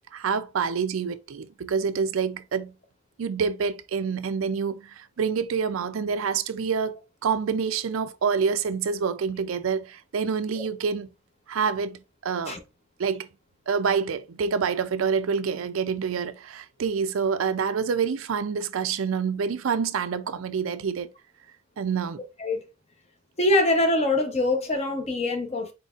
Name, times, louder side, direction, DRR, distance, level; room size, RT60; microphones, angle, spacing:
voice 1, 0.1-2.7 3.2-11.1 11.5-12.0 12.2-12.6 13.0-13.3 13.7-21.1 21.8-22.2, right 6 dB, 85° right, 0.4 m, -27 dB
voice 2, 23.4-25.7, left 2 dB, 30° left, 0.8 m, -23 dB
4.3 x 4.0 x 2.4 m
head